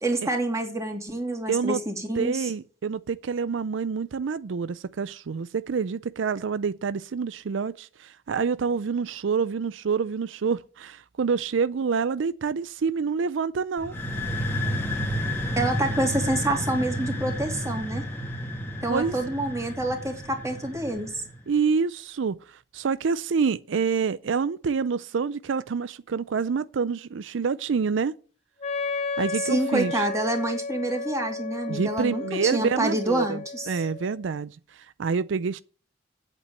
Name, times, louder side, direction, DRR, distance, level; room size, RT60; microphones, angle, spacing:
voice 1, 0.0-2.5 15.6-18.0 18.8-21.2 29.5-33.8, right 1 dB, 15° right, 2.6 m, -27 dB
voice 2, 1.5-1.8 2.2-13.9 18.9-19.2 21.5-28.1 29.2-30.1 31.7-33.4 33.7-35.6, right 5 dB, 85° right, 0.4 m, -27 dB
sound 1, 13.8-21.4, equal, 10° left, 2.1 m, -31 dB
Wind instrument woodwind instrument, 28.6-34.2, left 4 dB, 35° left, 1.0 m, -33 dB
8.3 x 8.2 x 8.2 m
head